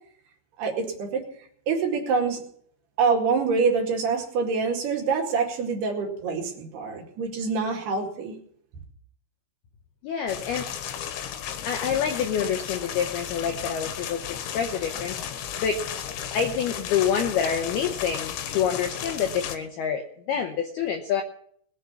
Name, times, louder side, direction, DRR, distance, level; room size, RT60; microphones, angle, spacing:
voice 1, 0.6-1.2 1.7-2.4 3.0-8.4, right 5 dB, 60° right, 0 dB, 3.8 m, -25 dB
voice 2, 10.0-10.7 11.6-15.2 15.6-15.8 16.3-21.2, left 7 dB, 85° left, 4 dB, 2.2 m, -27 dB
sound 1, 10.3-19.6, left 9 dB, 70° left, 3.2 m, -34 dB
20.5 x 7.8 x 7.1 m, 0.65 s
omnidirectional pair, 5.9 m